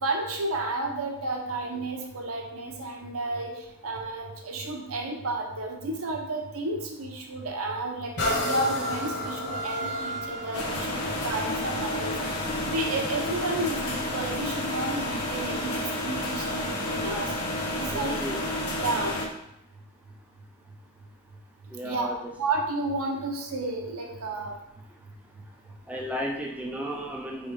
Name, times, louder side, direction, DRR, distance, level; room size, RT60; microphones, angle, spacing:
voice 1, 0.0-17.3 17.8-18.2 18.8-19.2 21.8-22.1 22.4-24.5, right 2 dB, 75° right, 1 dB, 0.8 m, -32 dB
sound 1, 8.2-15.8 16.4-16.5, left 1 dB, 55° left, 1.0 m, -34 dB
sound 2, 10.5-19.3, left 1 dB, 90° left, 0.9 m, -30 dB
voice 2, 17.9-18.4 21.7-22.3 25.9-27.5, equal, 5° right, 0 dB, 0.3 m, -33 dB
4.0 x 4.0 x 3.2 m, 0.83 s
head